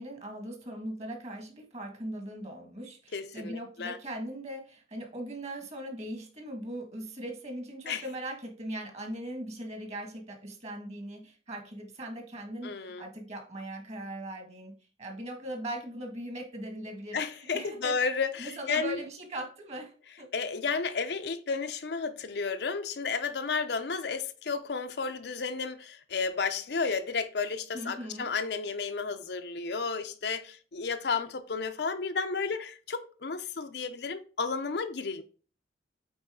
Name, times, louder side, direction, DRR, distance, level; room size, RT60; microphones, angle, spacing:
voice 1, 0.0-14.7 15.0-17.2 17.5-18.0 18.4-19.9 20.2-20.3 27.7-28.3, right 1 dB, 35° right, 1.8 m, -39 dB
voice 2, 3.1-4.0 7.9-8.0 12.6-13.0 17.1-19.0 20.3-35.2, left 5 dB, 60° left, 0.6 m, -32 dB
8.7 x 4.1 x 3.7 m
head